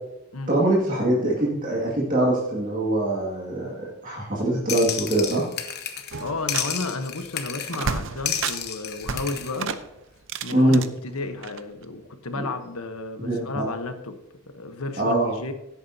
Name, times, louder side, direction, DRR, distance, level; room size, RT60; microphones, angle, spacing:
voice 1, 0.5-5.4 10.5-10.8 12.4-12.5 13.2-13.6 15.0-15.4, right 1 dB, 35° right, -5 dB, 2.1 m, -23 dB
sound 1, 4.7-6.2 6.5-7.9 8.3-9.6, left 8 dB, 50° left, 1.1 m, -31 dB
sound 2, 6.1-7.0 7.2-7.3 7.6-8.7 9.0-10.9 11.4-11.8, right 5 dB, 60° right, 0.7 m, -32 dB
voice 2, 6.2-9.8 10.4-14.2 14.5-15.5, left 3 dB, 85° left, 7 dB, 1.1 m, -32 dB
16.5 x 8.5 x 2.8 m, 0.90 s
head